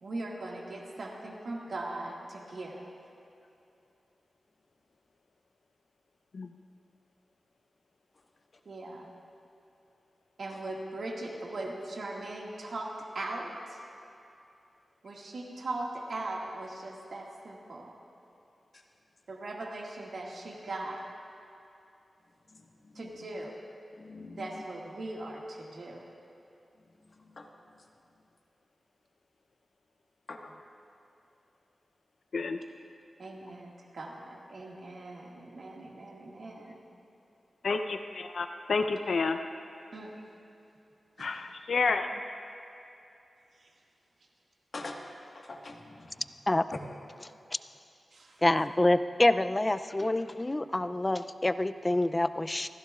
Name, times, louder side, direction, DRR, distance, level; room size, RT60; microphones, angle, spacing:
voice 1, 0.0-2.8 8.7-9.1 10.4-13.8 15.0-17.9 19.3-21.0 22.9-23.5 24.4-26.0 33.2-36.8 39.9-40.1 41.2-41.3 43.5-43.7 48.1-48.4, right 2 dB, 70° right, -3 dB, 1.9 m, -39 dB
voice 2, 22.5-23.1 24.0-24.5 27.3-27.5 30.3-30.5 37.7-37.8 44.7-46.2, left 2 dB, 50° left, 1 dB, 1.4 m, -44 dB
voice 3, 37.6-39.4 41.2-42.2, left 4 dB, 75° left, 6 dB, 0.6 m, -30 dB
voice 4, 48.4-52.7, left 1 dB, 20° left, 11 dB, 0.4 m, -26 dB
28.5 x 15.0 x 2.4 m, 2.7 s
wide cardioid pair, 120°, 0 cm